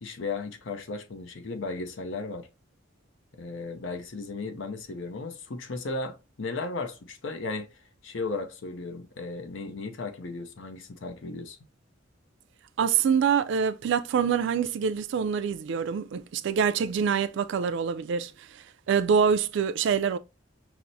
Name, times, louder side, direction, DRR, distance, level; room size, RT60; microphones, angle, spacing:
voice 1, 0.0-2.5 3.3-7.7 8.0-11.6, left 3 dB, 70° left, 0.6 m, -35 dB
voice 2, 12.8-18.3 18.9-20.2, right 7 dB, 65° right, 0.3 m, -25 dB
5.7 x 2.0 x 2.6 m
head